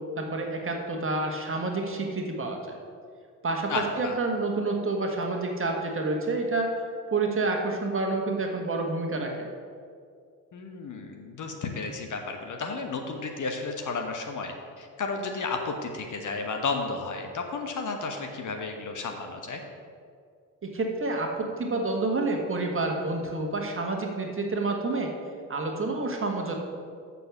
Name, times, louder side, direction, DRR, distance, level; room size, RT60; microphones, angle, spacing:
voice 1, 0.0-2.8 3.4-6.8 7.1-9.5 20.6-25.1 25.5-26.6, right 3 dB, 25° right, 2 dB, 1.6 m, -29 dB
voice 2, 3.7-4.2 10.5-19.6, left 4 dB, 40° left, 3 dB, 1.2 m, -33 dB
6.9 x 6.8 x 7.2 m, 2.2 s
figure-of-eight pair, 45°, 46 cm